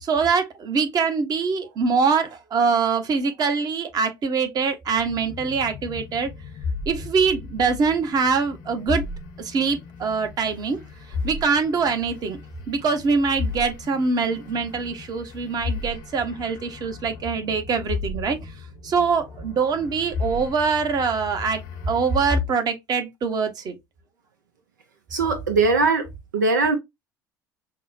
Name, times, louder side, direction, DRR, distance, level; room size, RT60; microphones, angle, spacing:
voice 1, 0.0-6.3 6.9-9.0 9.4-10.8 11.2-12.4 12.7-18.4 18.8-21.6 21.9-23.8, right 5 dB, 40° right, 0.9 m, -23 dB
sound 1, 4.9-22.3, left 4 dB, 60° left, 0.7 m, -35 dB
voice 2, 25.1-26.1 26.3-26.8, right 3 dB, 85° right, 0.5 m, -20 dB
5.6 x 2.1 x 2.5 m
figure-of-eight pair, 65°, 10 cm